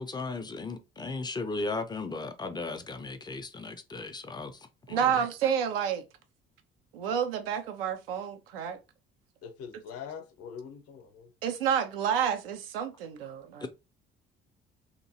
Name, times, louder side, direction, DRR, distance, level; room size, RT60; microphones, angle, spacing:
voice 1, 0.0-5.2 13.6-13.7, left 3 dB, 15° left, 0.5 m, -36 dB
voice 2, 4.9-6.0 6.9-8.8 11.4-13.7, right 8 dB, 75° right, 0.6 m, -29 dB
voice 3, 9.4-11.3, left 7 dB, 55° left, 0.8 m, -43 dB
2.9 x 2.5 x 2.7 m
figure-of-eight pair, 50°, 30 cm